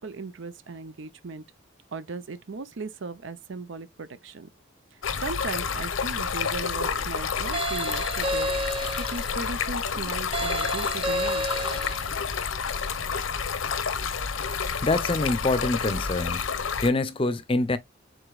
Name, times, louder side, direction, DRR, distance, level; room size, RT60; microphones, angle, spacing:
voice 1, 0.0-1.4 1.9-4.5 4.9-11.6, right 4 dB, 75° right, 0.6 m, -37 dB
Stream, 5.0-16.9, left 6 dB, 90° left, 0.7 m, -29 dB
sound 1, 7.5-9.3 10.3-12.1, equal, 25° right, 0.4 m, -30 dB
voice 2, 14.8-16.4 16.8-17.8, left 2 dB, 25° left, 0.6 m, -25 dB
4.9 x 3.9 x 2.4 m
head